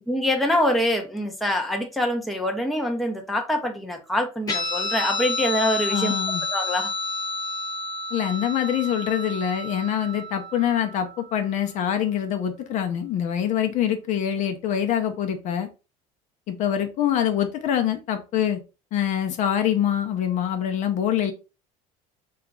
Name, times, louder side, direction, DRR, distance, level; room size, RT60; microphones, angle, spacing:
voice 1, 0.1-6.1 6.4-6.9, left 1 dB, ahead, 0.6 m, -25 dB
Guitar, 4.5-11.4, left 2 dB, 25° left, 0.9 m, -30 dB
voice 2, 5.9-6.5 8.1-15.7 16.5-18.6 18.9-21.3, left 10 dB, 50° left, 0.6 m, -25 dB
2.9 x 2.3 x 3.6 m
cardioid pair, 125°, 16 cm